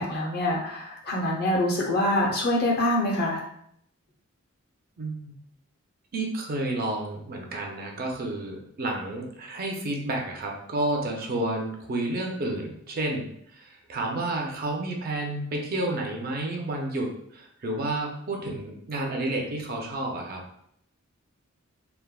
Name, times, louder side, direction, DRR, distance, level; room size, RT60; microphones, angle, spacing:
voice 1, 0.0-3.4, left 1 dB, 50° left, -2 dB, 0.7 m, -25 dB
voice 2, 5.0-5.3 6.1-13.3 13.6-20.4, right 2 dB, 45° right, 1 dB, 0.5 m, -30 dB
3.3 x 2.1 x 2.2 m, 0.70 s
head